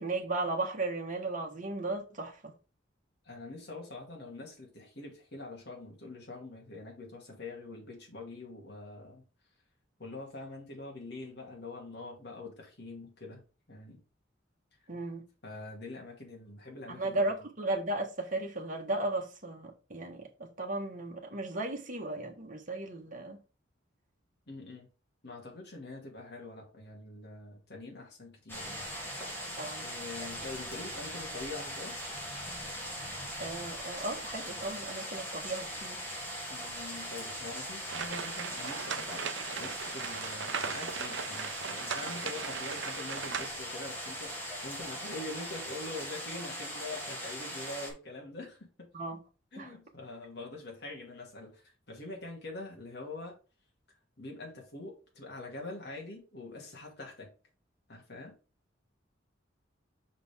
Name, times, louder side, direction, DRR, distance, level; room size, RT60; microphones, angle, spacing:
voice 1, 0.0-2.5 14.9-15.2 16.9-23.4 29.6-29.9 33.4-36.1 48.9-49.2 49.6-49.7, right 2 dB, 45° right, 1.3 m, -35 dB
voice 2, 3.2-9.2 10.0-13.4 13.7-14.0 15.4-17.4 24.5-24.9 25.2-28.9 29.8-32.0 36.5-39.3 39.6-48.9 49.5-53.4 54.2-57.3 57.9-58.3, left 2 dB, 60° left, 2.2 m, -44 dB
sound 1, 28.5-47.9, equal, 10° left, 2.3 m, -40 dB
sound 2, 37.9-43.5, right 7 dB, 70° right, 0.6 m, -38 dB
5.8 x 5.2 x 3.5 m
head